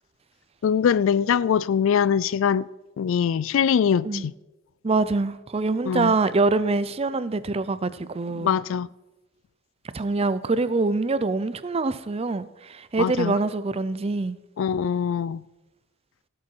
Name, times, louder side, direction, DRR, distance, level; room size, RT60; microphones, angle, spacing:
voice 1, 0.6-2.7 3.0-4.3 5.9-6.1 8.4-8.9 13.0-13.3 14.6-15.4, left 7 dB, 70° left, 0.3 m, -22 dB
voice 2, 4.8-8.5 9.9-14.4, right 3 dB, 30° right, 0.5 m, -25 dB
16.5 x 7.6 x 4.6 m
head